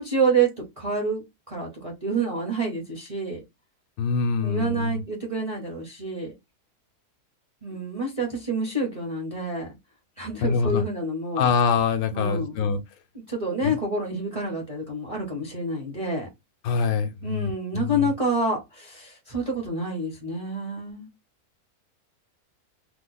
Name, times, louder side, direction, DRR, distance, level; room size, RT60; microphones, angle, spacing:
voice 1, 0.0-3.4 4.4-6.3 7.6-9.7 10.2-11.5 12.1-12.6 13.3-16.3 17.2-21.1, right 2 dB, 30° right, 0.7 m, -28 dB
voice 2, 4.0-5.0 10.4-10.8 11.4-12.8 13.6-13.8 16.6-18.0, left 5 dB, 75° left, 1.0 m, -24 dB
2.9 x 2.1 x 3.7 m
omnidirectional pair, 1.6 m